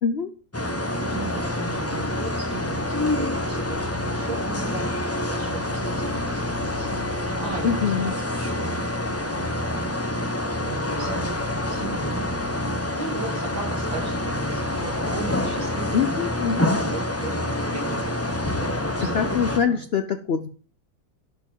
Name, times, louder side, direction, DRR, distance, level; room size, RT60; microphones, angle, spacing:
voice 1, 0.0-0.3 7.6-8.1 15.9-16.7 19.0-20.5, left 7 dB, 70° left, 8 dB, 0.6 m, -24 dB
sound 1, 0.5-19.6, left 1 dB, 10° left, 0.7 m, -27 dB
voice 2, 0.9-4.9 5.2-7.1 7.4-9.9 10.2-12.3 13.0-16.2 16.6-18.4 19.0-19.8, right 3 dB, 85° right, -5 dB, 3.8 m, -37 dB
12.0 x 4.5 x 7.2 m, 0.40 s
omnidirectional pair, 2.0 m